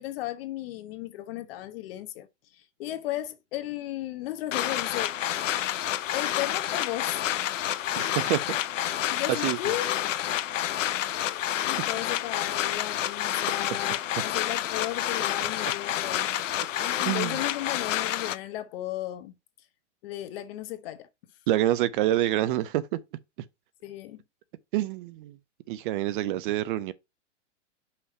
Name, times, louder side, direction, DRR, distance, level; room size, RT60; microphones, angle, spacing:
voice 1, 0.0-2.3 2.5-5.2 6.1-7.2 8.0-8.2 9.1-10.2 11.1-16.3 16.8-19.3 20.0-21.1 23.8-24.2, left 14 dB, 50° left, 1.1 m, -35 dB
sound 1, 4.5-18.4, left 12 dB, 85° left, 0.6 m, -29 dB
voice 2, 8.0-8.4 9.4-9.6 17.0-17.4 21.5-23.0 24.7-25.4 25.7-26.9, right 14 dB, 45° right, 0.5 m, -27 dB
5.7 x 3.2 x 5.3 m
hypercardioid pair, 125°, 37 cm